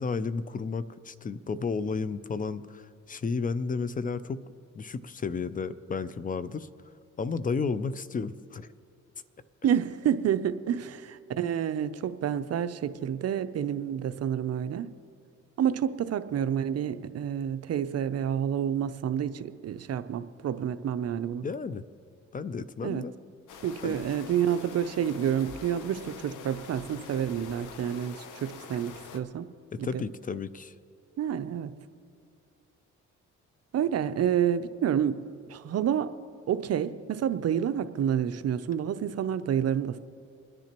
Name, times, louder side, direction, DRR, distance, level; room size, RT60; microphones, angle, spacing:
voice 1, 0.0-4.4 4.7-6.7 7.2-8.7 10.4-10.5 21.4-21.8 22.3-23.1 23.8-24.0 29.7-30.7, left 4 dB, 30° left, 15 dB, 0.5 m, -32 dB
voice 2, 9.6-14.9 15.6-21.4 22.8-23.0 23.6-29.5 29.8-30.0 31.2-31.7 33.7-35.1 35.5-36.1 36.5-40.0, right 9 dB, 55° right, 11 dB, 0.6 m, -29 dB
sound 1, 23.5-29.2, left 6 dB, 80° left, 0.9 m, -45 dB
30.0 x 10.5 x 3.0 m, 2.4 s
cardioid pair, 90°, 30 cm